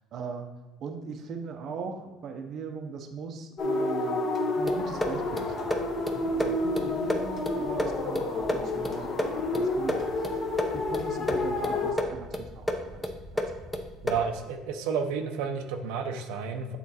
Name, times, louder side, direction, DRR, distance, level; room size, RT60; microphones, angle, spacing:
voice 1, 0.1-0.5 0.8-10.1 10.7-13.8, right 5 dB, 45° right, 5 dB, 0.6 m, -40 dB
sound 1, 3.6-11.9, left 2 dB, 35° left, 1.1 m, -30 dB
sound 2, 4.7-14.4, left 1 dB, 5° left, 0.6 m, -33 dB
voice 2, 14.0-16.8, right 6 dB, 85° right, 5 dB, 0.7 m, -31 dB
8.3 x 3.7 x 4.2 m, 1.1 s
cardioid pair, 150°, 0 cm